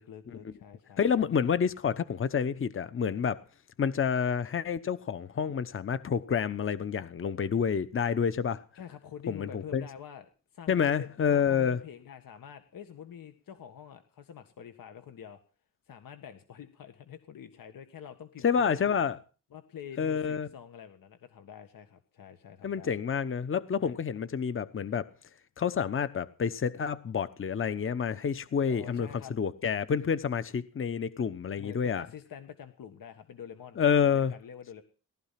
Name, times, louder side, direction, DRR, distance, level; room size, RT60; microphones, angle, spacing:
voice 1, 0.0-1.0 8.8-15.4 15.9-19.0 19.5-23.0 23.8-24.0 28.7-29.3 31.6-34.8, left 8 dB, 80° left, 1.8 m, -47 dB
voice 2, 1.0-3.4 3.8-8.6 9.3-9.8 10.7-11.8 18.4-19.2 20.0-20.5 22.6-25.1 25.6-29.1 29.4-32.1 33.8-34.3, left 7 dB, 40° left, 1.0 m, -28 dB
19.0 x 13.0 x 5.9 m
wide cardioid pair, 150°, 33 cm